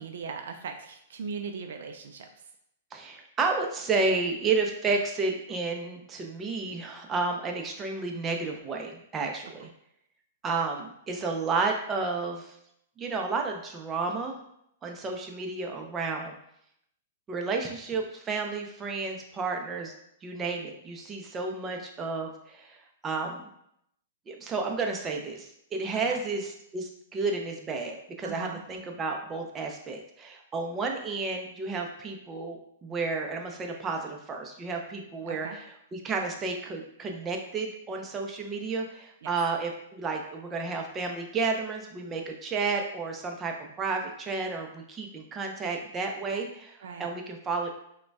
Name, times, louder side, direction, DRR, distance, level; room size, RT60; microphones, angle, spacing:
voice 1, 0.0-2.3 9.6-9.7 26.1-26.2 28.2-28.6 35.3-35.6 39.2-39.3 46.8-47.1, right 5 dB, 70° right, 6 dB, 0.4 m, -39 dB
voice 2, 2.9-9.7 10.4-12.6 13.0-14.4 14.8-16.3 17.3-19.9 20.2-23.4 24.3-47.7, right 4 dB, 20° right, 2 dB, 0.5 m, -31 dB
4.9 x 2.2 x 2.3 m, 0.75 s
hypercardioid pair, 125°, 0 cm